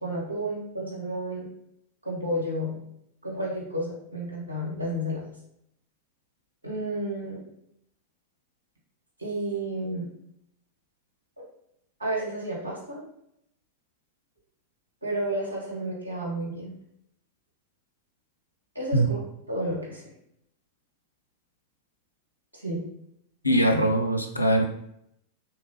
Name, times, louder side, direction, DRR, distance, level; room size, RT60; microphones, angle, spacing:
voice 1, 0.0-1.5 2.0-2.8 3.2-5.2 6.6-7.4 9.2-10.1 12.0-13.0 15.0-16.7 18.7-20.0 22.6-22.8, right 1 dB, 80° right, -5 dB, 1.3 m, -31 dB
voice 2, 23.4-24.6, right 1 dB, 85° left, 4 dB, 0.4 m, -22 dB
3.5 x 2.8 x 2.8 m, 0.76 s
figure-of-eight pair, 90°, 0 cm